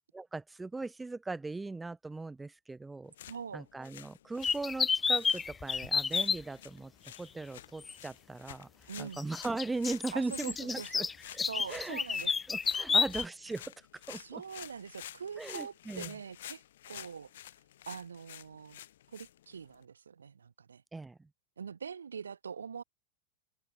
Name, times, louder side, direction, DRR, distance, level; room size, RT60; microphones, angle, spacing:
voice 1, 0.1-3.1 3.5-8.7 9.0-11.1 11.3-12.0 12.5-13.6 14.1-14.4 15.4-16.1 20.9-21.3, right 3 dB, 10° right, 1.7 m, -39 dB
sound 1, 3.0-19.8, left 12 dB, 60° left, 4.2 m, -51 dB
voice 2, 3.2-3.6 8.9-9.2 10.1-11.1 11.5-12.3 12.9-13.0 14.1-17.5 17.9-18.8 19.1-20.8 21.6-22.8, right 6 dB, 70° right, 4.6 m, -43 dB
sound 2, 4.4-6.4 7.8-7.9 9.2-13.2, left 5 dB, 15° left, 0.4 m, -30 dB
open air
figure-of-eight pair, 90°, 0 cm